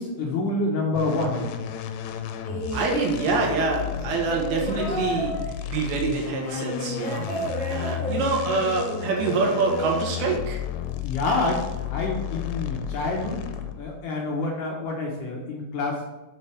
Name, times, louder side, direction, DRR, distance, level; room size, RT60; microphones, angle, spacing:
voice 1, 0.0-1.6 11.0-11.6 11.9-13.4 13.8-16.0, left 2 dB, 70° left, -1 dB, 2.1 m, -27 dB
sound 1, 1.0-13.9, left 9 dB, 85° left, 2.8 m, -33 dB
sound 2, 2.4-10.8 11.8-11.9, equal, 10° left, 0.4 m, -32 dB
voice 2, 2.7-5.4 5.7-7.3 7.7-10.6, right 4 dB, 90° right, -1 dB, 3.8 m, -26 dB
7.7 x 7.2 x 3.4 m, 1.2 s
omnidirectional pair, 4.9 m